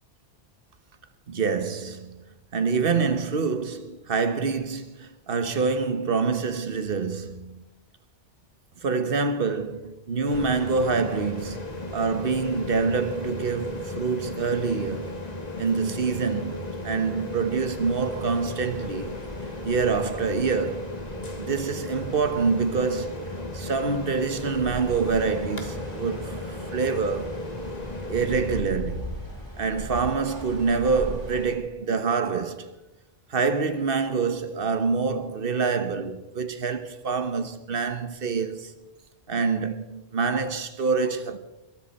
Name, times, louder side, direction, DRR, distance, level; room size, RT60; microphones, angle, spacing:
voice 1, 1.3-2.2 2.5-7.6 8.8-11.6 11.9-15.2 15.6-16.6 16.8-19.2 19.6-20.9 21.4-27.4 28.1-29.1 29.6-32.7 33.3-38.7 39.3-41.4, right 5 dB, 55° right, 1.4 m, -26 dB
sound 1, 10.3-28.6, left 1 dB, 35° left, 1.8 m, -35 dB
sound 2, 17.6-31.6, equal, 15° left, 5.4 m, -40 dB
21.5 x 13.0 x 4.3 m
omnidirectional pair, 1.1 m